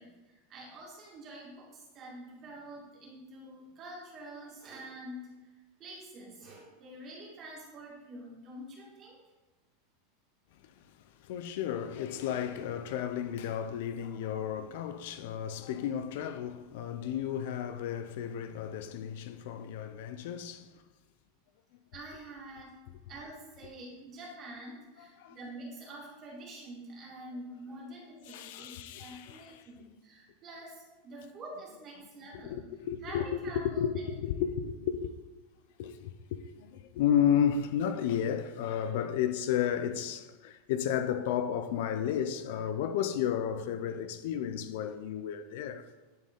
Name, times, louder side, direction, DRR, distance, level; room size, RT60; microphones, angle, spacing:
voice 1, 0.0-5.3 5.8-9.2 21.9-22.8 23.1-32.6 33.0-34.1, right 1 dB, 25° right, 2.1 m, -47 dB
voice 2, 11.2-20.7 25.0-25.4 28.3-29.7 32.3-35.1 35.8-45.9, left 9 dB, 60° left, 0.4 m, -32 dB
10.5 x 4.3 x 3.7 m
supercardioid pair, 160°, 0 cm